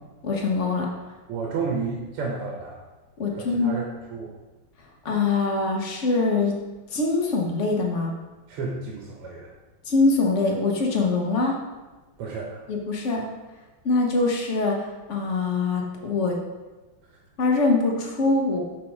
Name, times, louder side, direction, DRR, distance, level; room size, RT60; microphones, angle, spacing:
voice 1, 0.2-0.9 3.2-3.8 5.0-6.5 6.9-8.1 9.9-11.6 12.7-13.2 13.8-16.4 17.4-18.6, left 3 dB, 50° left, 0 dB, 0.9 m, -23 dB
voice 2, 1.3-2.8 3.3-3.9 4.1-4.4 8.5-9.5 12.2-12.6, right 4 dB, 85° right, -1 dB, 1.8 m, -31 dB
6.2 x 4.1 x 4.7 m, 1.2 s
omnidirectional pair, 2.4 m